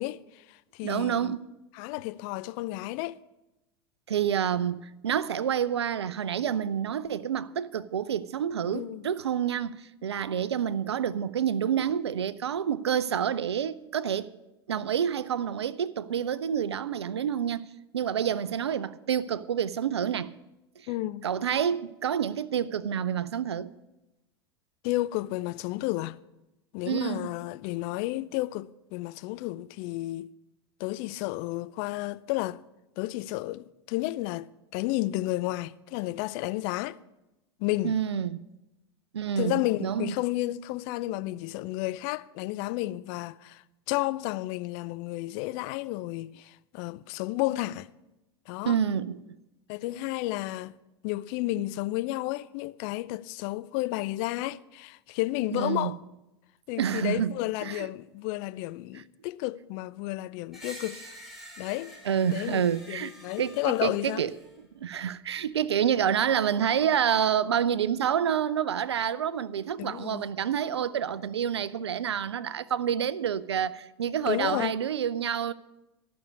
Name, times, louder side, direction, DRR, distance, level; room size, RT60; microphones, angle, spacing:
voice 1, 0.0-1.3 1.7-3.2 8.7-9.0 20.9-21.3 24.8-26.2 26.7-30.3 30.8-32.6 33.0-37.0 37.6-38.0 39.4-47.9 48.5-48.8 49.7-50.7 51.0-56.0 56.7-61.0 61.6-62.0 62.3-64.2 69.8-70.3 74.2-74.7, left 18 dB, 45° left, 0.4 m, -32 dB
voice 2, 0.8-1.4 4.1-14.3 14.7-17.7 17.9-20.3 21.2-23.7 26.9-27.3 37.8-38.4 39.1-40.1 48.6-49.2 55.5-55.9 56.8-57.9 62.1-63.1 63.4-64.3 64.7-75.5, right 8 dB, 75° right, 0.5 m, -28 dB
Screech, 60.5-64.5, equal, ahead, 4.5 m, -47 dB
13.5 x 6.4 x 8.3 m
figure-of-eight pair, 85°, 14 cm